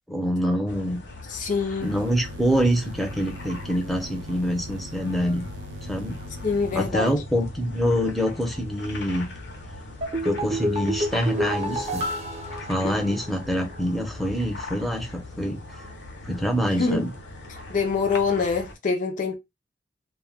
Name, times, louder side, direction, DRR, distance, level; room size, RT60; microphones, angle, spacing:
voice 1, 0.1-1.0 1.8-5.5 5.9-6.2 6.7-9.3 10.2-12.0 12.7-15.6 16.2-17.1, equal, ahead, 0.6 m, -25 dB
sound 1, 0.7-18.7, left 2 dB, 80° left, 0.8 m, -40 dB
voice 2, 1.3-1.9 6.4-7.2 12.8-13.2 16.6-17.0 17.7-19.4, left 4 dB, 45° left, 0.4 m, -25 dB
sound 2, 1.8-6.9, left 1 dB, 75° right, 0.4 m, -41 dB
sound 3, 10.0-13.4 13.7-13.8, equal, 35° right, 0.7 m, -29 dB
2.2 x 2.1 x 3.3 m
head